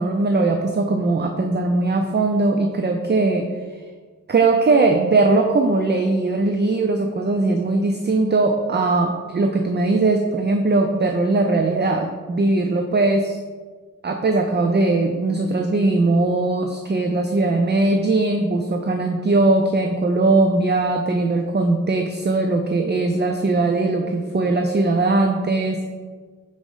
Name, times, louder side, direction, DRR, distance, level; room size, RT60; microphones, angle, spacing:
voice 1, 0.0-3.5 4.3-13.4 14.0-25.8, right 3 dB, 30° right, 4 dB, 0.4 m, -20 dB
4.9 x 4.0 x 5.3 m, 1.5 s
wide cardioid pair, 80°, 33 cm